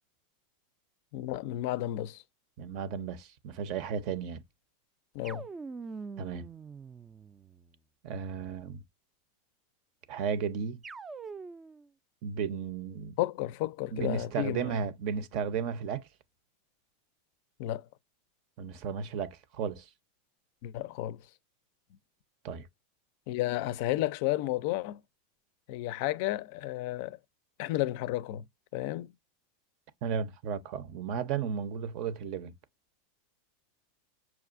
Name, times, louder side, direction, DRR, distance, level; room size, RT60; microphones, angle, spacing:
voice 1, 1.1-2.2 5.1-5.5 13.2-14.8 17.6-17.9 20.6-21.2 23.3-25.0 25.7-27.2 27.6-28.5 28.7-29.1, left 15 dB, 60° left, 0.4 m, -32 dB
voice 2, 2.6-4.4 6.2-6.5 8.0-8.8 10.1-10.8 12.2-13.2 13.9-16.1 18.6-19.9 22.4-22.7 30.0-32.5, right 6 dB, 55° right, 0.7 m, -34 dB
sound 1, 5.2-7.7 10.8-11.9, right 4 dB, 20° right, 0.3 m, -44 dB
5.9 x 2.4 x 2.5 m
supercardioid pair, 125°, 0 cm